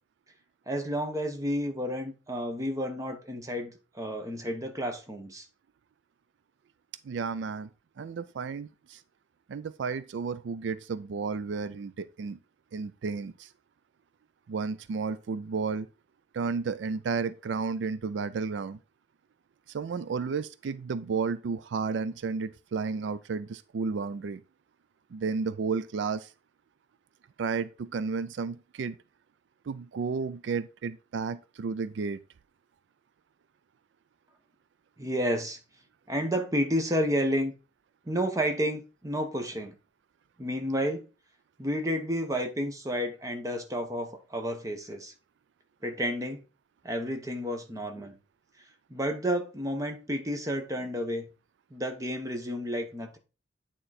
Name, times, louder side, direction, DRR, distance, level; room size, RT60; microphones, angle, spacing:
voice 1, 0.7-5.5 35.0-35.6 36.1-37.5 38.1-39.7 40.4-41.0 41.6-45.1 45.8-46.4 46.8-48.1 48.9-51.3 51.7-53.2, equal, 20° right, 1.1 m, -31 dB
voice 2, 7.0-7.7 8.0-9.0 9.5-12.4 12.7-13.5 14.5-15.9 16.3-18.8 19.7-24.4 25.1-26.3 27.4-29.0 29.7-32.2, right 5 dB, 80° right, 0.4 m, -32 dB
9.0 x 3.8 x 4.2 m
head